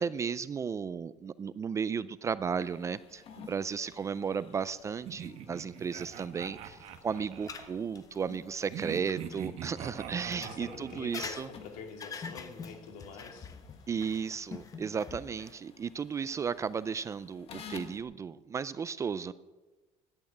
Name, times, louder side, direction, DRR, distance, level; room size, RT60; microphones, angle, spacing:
voice 1, 0.0-11.5 13.9-19.3, right 6 dB, 20° right, 16 dB, 0.4 m, -34 dB
sound 1, 2.5-18.0, left 6 dB, 45° left, 1.6 m, -55 dB
sound 2, 5.1-7.8 8.7-11.3, right 8 dB, 50° right, 1.2 m, -43 dB
sound 3, 6.7-9.4 10.2-15.6, left 5 dB, 25° left, 0.8 m, -45 dB
voice 2, 10.4-13.5, left 5 dB, 80° left, 3 dB, 2.8 m, -46 dB
11.5 x 8.7 x 9.1 m, 1.2 s
cardioid pair, 160°, 13 cm